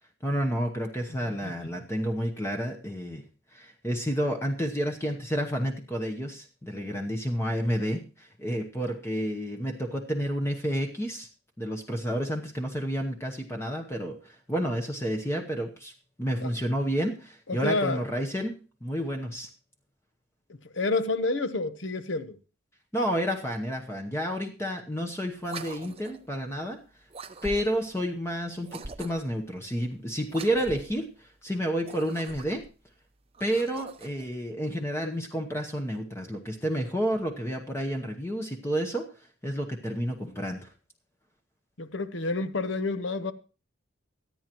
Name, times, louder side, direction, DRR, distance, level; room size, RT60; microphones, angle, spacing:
voice 1, 0.2-3.2 3.5-11.3 11.6-15.9 16.2-19.5 22.9-26.8 27.4-32.6 33.4-39.1 39.4-40.7, equal, 15° left, 0.9 m, -30 dB
voice 2, 1.3-1.7 16.4-16.5 17.5-18.0 20.7-22.4 41.8-43.3, left 3 dB, 65° left, 0.9 m, -29 dB
sound 1, 25.4-26.3 27.1-27.9 28.6-29.4 30.3-31.0 31.7-32.7 33.3-34.3, right 3 dB, 30° right, 0.7 m, -42 dB
24.5 x 8.9 x 3.0 m
head